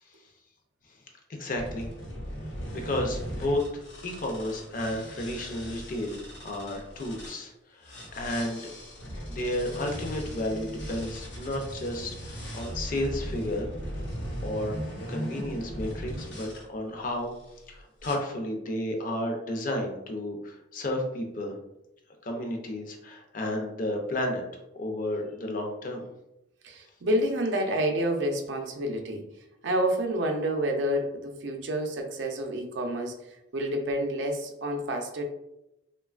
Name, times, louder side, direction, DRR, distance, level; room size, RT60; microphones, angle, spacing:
voice 1, 1.3-1.9 2.7-8.7 9.3-13.7 14.4-14.8 15.1-17.3 17.7-21.6 22.2-24.4 24.7-26.0, left 1 dB, 45° left, 2 dB, 0.5 m, -32 dB
sound 1, 1.6-7.4 7.8-16.6 17.3-17.6 18.0-18.1, equal, 85° left, 0.8 m, -38 dB
voice 2, 26.6-29.2 29.6-33.1 33.5-35.2, right 1 dB, 75° right, 3 dB, 0.5 m, -28 dB
3.0 x 2.2 x 2.3 m, 0.88 s
head